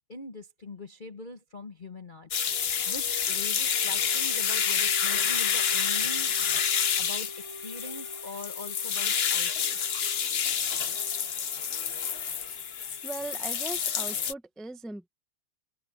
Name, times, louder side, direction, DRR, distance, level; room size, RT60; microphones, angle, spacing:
voice 1, 0.1-6.3 7.0-7.3 7.6-9.8, left 2 dB, 35° left, 0.9 m, -43 dB
sound 1, 2.3-14.3, left 7 dB, 80° left, 0.5 m, -28 dB
sound 2, 3.2-14.1, equal, 65° right, 2.7 m, -46 dB
voice 2, 13.0-15.1, right 2 dB, ahead, 0.3 m, -39 dB
open air
omnidirectional pair, 2.4 m